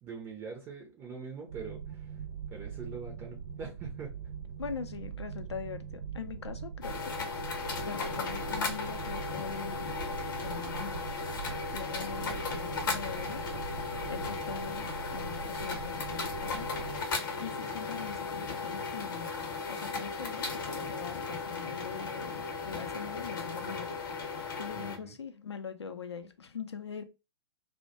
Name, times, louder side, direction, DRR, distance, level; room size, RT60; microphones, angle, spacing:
voice 1, 0.0-2.2 2.5-4.1 24.8-25.1, right 5 dB, 20° right, 0.4 m, -43 dB
sound 1, 1.5-17.0, right 7 dB, 75° right, 0.8 m, -42 dB
voice 2, 4.6-7.2 7.8-9.9 10.4-11.1 11.7-13.4 13.8-16.7 17.4-19.3 19.7-23.9 24.3-27.0, left 6 dB, 75° left, 0.4 m, -42 dB
sound 2, 6.8-25.0, left 4 dB, 50° left, 0.8 m, -36 dB
2.1 x 2.1 x 2.7 m
figure-of-eight pair, 110°, 14 cm